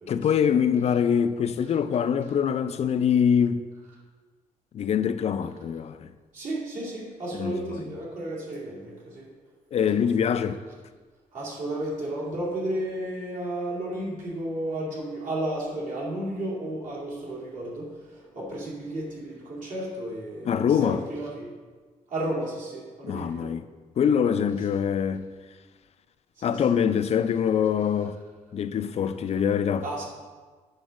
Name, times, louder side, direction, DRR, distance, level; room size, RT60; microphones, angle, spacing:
voice 1, 0.1-3.6 4.7-6.1 7.3-8.0 9.7-10.6 20.5-21.0 23.0-23.6 24.0-25.3 26.4-28.2 28.5-29.8, left 7 dB, 50° left, 0.4 m, -24 dB
voice 2, 6.3-9.3 10.0-10.1 11.3-21.6 22.1-23.6 26.4-26.8 29.8-30.0, right 1 dB, 60° right, 2.2 m, -33 dB
8.1 x 3.9 x 6.2 m
cardioid pair, 135°, 14 cm